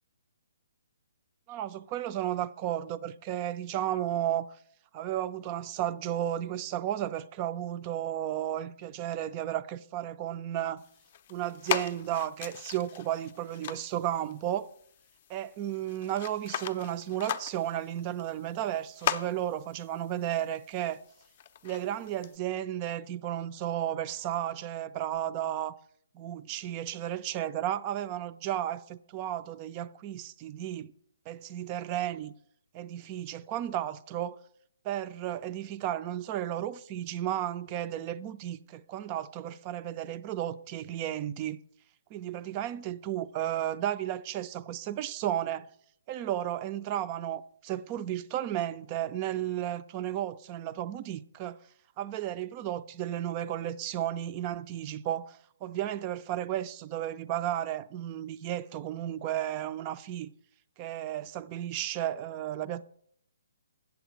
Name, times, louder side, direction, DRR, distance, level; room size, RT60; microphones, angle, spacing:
voice 1, 1.5-4.5 4.9-10.8 11.3-14.7 15.3-21.0 21.6-25.7 26.1-30.9 31.3-32.3 32.7-34.4 34.8-41.6 42.1-45.7 46.1-51.6 52.0-60.3 60.8-62.9, right 12 dB, 25° right, 0.4 m, -33 dB
sound 1, 10.8-22.4, left 9 dB, 40° left, 0.5 m, -39 dB
8.3 x 7.0 x 5.1 m
hypercardioid pair, 155°, 0 cm